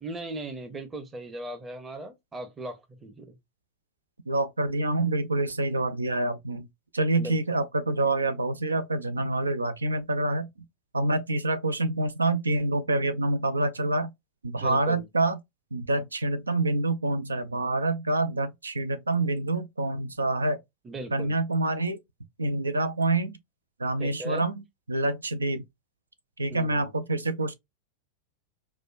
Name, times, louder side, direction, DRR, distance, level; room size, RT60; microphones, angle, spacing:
voice 1, 0.0-3.4 7.2-7.4 14.6-15.0 20.8-21.4 24.0-24.4 26.5-26.9, right 1 dB, 15° right, 0.8 m, -38 dB
voice 2, 4.3-6.7 6.9-10.5 10.9-14.1 14.4-15.4 15.7-20.6 21.1-22.0 22.4-23.4 23.8-25.6 26.4-27.5, right 2 dB, 80° right, 0.5 m, -27 dB
4.8 x 2.2 x 2.4 m
figure-of-eight pair, 90°, 0 cm